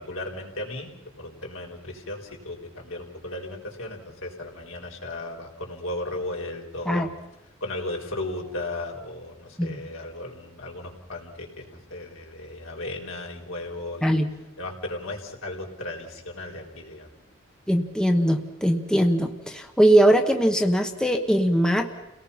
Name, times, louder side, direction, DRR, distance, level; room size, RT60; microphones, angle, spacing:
voice 1, 0.0-7.1 7.6-14.2 14.6-17.1, left 2 dB, 80° left, 1 dB, 4.2 m, -35 dB
voice 2, 17.7-21.9, right 1 dB, 5° left, 4 dB, 1.1 m, -21 dB
30.0 x 18.5 x 5.7 m, 0.92 s
head